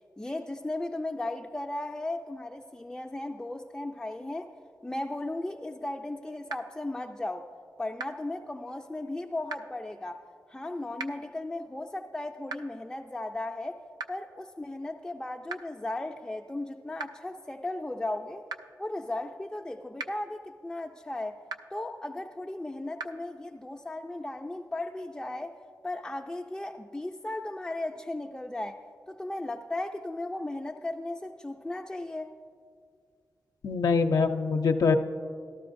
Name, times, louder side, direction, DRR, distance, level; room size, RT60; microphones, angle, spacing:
voice 1, 0.2-4.5 4.8-7.5 7.8-10.2 10.5-13.8 14.1-18.4 18.8-21.4 21.7-25.5 25.8-28.8 29.1-32.3, left 2 dB, 10° left, 2 dB, 0.4 m, -36 dB
sound 1, 6.5-6.6 8.0-8.1 9.5-9.6 11.0-11.1 12.5-12.6 14.0-14.1 15.5-15.6 17.0-17.1 18.5-18.6 20.0-20.1 21.5-21.6 23.0-23.1, right 4 dB, 90° right, 0.4 m, -35 dB
voice 2, 33.6-35.0, left 4 dB, 75° left, 5 dB, 0.4 m, -24 dB
13.0 x 12.5 x 2.6 m, 2.2 s
cardioid pair, 70°, 7 cm